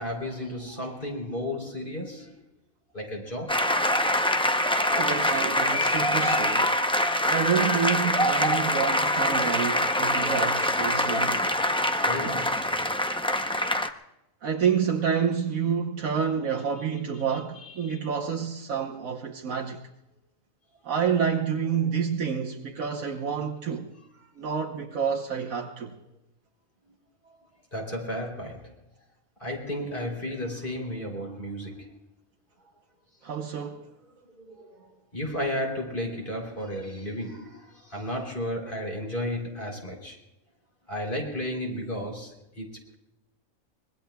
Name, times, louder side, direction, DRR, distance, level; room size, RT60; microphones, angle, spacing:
voice 1, 0.0-2.4 2.9-3.7 12.0-12.8 17.6-18.0 24.2-24.3 26.9-27.0 27.7-28.7 29.4-32.0 34.2-40.2 40.9-43.0, left 1 dB, 40° left, 3.6 m, -34 dB
sound 1, 3.5-13.9, left 1 dB, 10° left, 0.3 m, -24 dB
voice 2, 4.9-6.8 7.3-11.6 12.2-12.3 14.4-19.8 20.8-23.9 24.4-26.0 33.2-33.9, right 7 dB, 80° right, 1.4 m, -28 dB
25.0 x 21.0 x 2.3 m
omnidirectional pair, 1.4 m